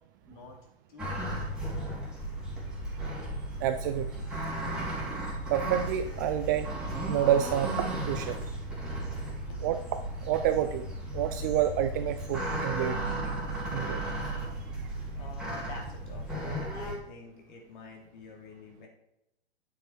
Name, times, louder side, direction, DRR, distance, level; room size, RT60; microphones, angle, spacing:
voice 1, 0.2-0.6 0.9-1.4 9.5-9.6 15.1-18.9, left 4 dB, 50° left, 1 dB, 3.4 m, -48 dB
Boat Ramp, 1.0-17.0, right 1 dB, ahead, 3.4 m, -35 dB
voice 2, 3.6-4.2 5.5-6.7 7.1-8.4 9.6-9.8 10.3-10.9 11.1-13.0 13.7-14.4, right 11 dB, 20° right, 9 dB, 0.3 m, -29 dB
9.7 x 7.3 x 4.6 m, 0.81 s
figure-of-eight pair, 115°, 31 cm